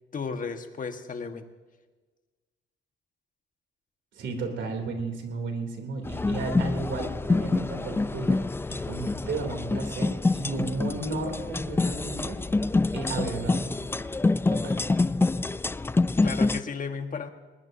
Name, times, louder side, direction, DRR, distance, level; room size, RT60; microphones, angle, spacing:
voice 1, 0.1-1.5 16.2-17.3, left 5 dB, 40° left, 6 dB, 1.5 m, -34 dB
voice 2, 4.1-8.4 8.7-12.4 12.9-14.0 14.5-14.9, right 3 dB, 70° right, 4 dB, 3.0 m, -34 dB
sound 1, 6.0-16.6, left 3 dB, 10° left, 0.3 m, -26 dB
20.0 x 19.5 x 2.7 m, 1.3 s
cardioid pair, 90°, 20 cm